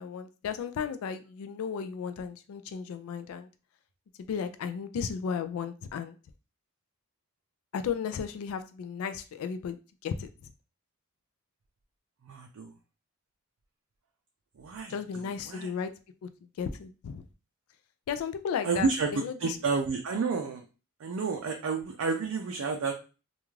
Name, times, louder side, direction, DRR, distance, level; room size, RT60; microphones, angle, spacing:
voice 1, 0.0-3.5 4.3-6.2 7.7-10.5 14.9-15.9 16.2-16.3 16.6-17.2 18.1-19.6, left 6 dB, 75° left, 0.3 m, -34 dB
voice 2, 12.2-12.7 14.6-15.7 18.6-19.1 19.4-20.6 21.0-22.9, right 4 dB, 70° right, 0.4 m, -30 dB
2.4 x 2.3 x 3.1 m
head